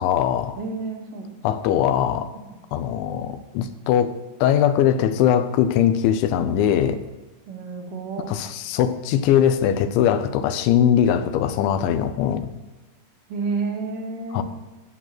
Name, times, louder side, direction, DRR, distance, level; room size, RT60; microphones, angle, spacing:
voice 1, 0.0-0.6 1.4-2.3 2.7-4.2 4.4-7.0 8.3-12.5 14.3-14.4, left 9 dB, 85° left, 10 dB, 3.2 m, -21 dB
voice 2, 0.6-1.3 2.5-2.6 6.5-6.7 7.5-8.3 13.3-14.4, right 4 dB, 55° right, 2 dB, 2.9 m, -30 dB
12.0 x 8.7 x 7.7 m, 1.2 s
omnidirectional pair, 5.2 m